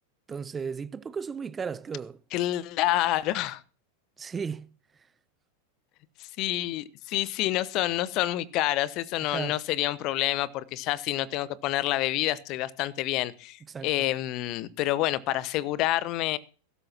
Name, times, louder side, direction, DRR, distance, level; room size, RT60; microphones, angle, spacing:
voice 1, 0.3-2.2 4.2-4.7 9.2-9.6 13.7-13.9, right 6 dB, 20° right, 0.6 m, -35 dB
voice 2, 2.3-3.6 6.2-16.4, left 15 dB, 40° left, 0.9 m, -28 dB
21.5 x 13.0 x 2.9 m
figure-of-eight pair, 90°, 0 cm